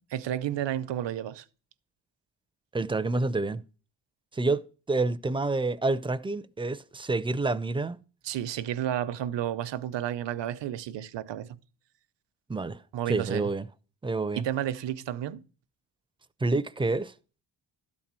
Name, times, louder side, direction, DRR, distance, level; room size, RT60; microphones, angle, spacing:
voice 1, 0.0-1.4 8.2-11.5 12.9-13.5 14.3-15.4, right 11 dB, 75° right, 0.8 m, -31 dB
voice 2, 2.7-3.6 4.3-8.0 12.5-13.7 14.0-14.4 16.4-17.1, right 3 dB, 10° right, 0.4 m, -28 dB
12.5 x 4.3 x 7.4 m
cardioid pair, 115°, 44 cm